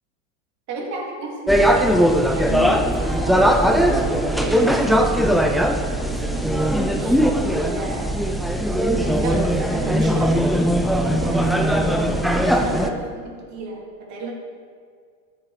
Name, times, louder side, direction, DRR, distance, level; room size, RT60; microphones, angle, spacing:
voice 1, 0.7-5.0 5.7-8.1 9.0-12.2 12.6-14.3, right 2 dB, 40° right, -1 dB, 2.5 m, -33 dB
sound 1, 1.5-12.9, equal, ahead, 0.4 m, -19 dB
13.5 x 7.5 x 4.9 m, 2.1 s
supercardioid pair, 125°, 41 cm